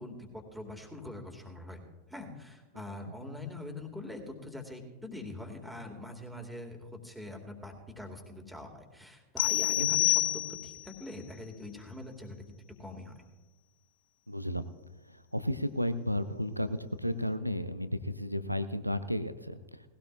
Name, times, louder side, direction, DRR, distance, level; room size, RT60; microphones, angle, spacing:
voice 1, 0.0-1.8 2.1-10.2 10.6-12.4 12.8-13.1, left 2 dB, ahead, 1 dB, 2.4 m, -43 dB
sound 1, 9.4-10.9, left 17 dB, 55° left, 0.4 m, -28 dB
voice 2, 14.3-14.7 15.1-19.8, equal, 90° right, 12 dB, 0.6 m, -33 dB
19.0 x 16.5 x 2.6 m, 1.2 s
figure-of-eight pair, 90°, 0 cm